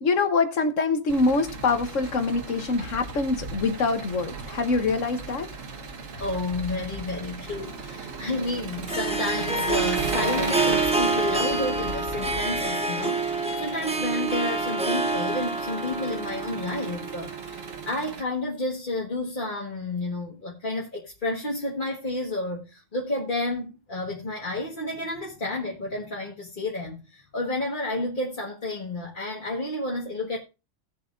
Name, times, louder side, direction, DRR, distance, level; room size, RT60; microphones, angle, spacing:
voice 1, 0.0-5.5, left 3 dB, 75° left, 1.4 m, -24 dB
Engine, 1.1-18.2, right 5 dB, 85° right, 1.7 m, -37 dB
voice 2, 6.2-30.4, left 2 dB, 40° left, 1.8 m, -31 dB
Harp, 7.5-17.9, right 2 dB, 5° right, 0.7 m, -28 dB
18.0 x 7.1 x 2.5 m
omnidirectional pair, 1.3 m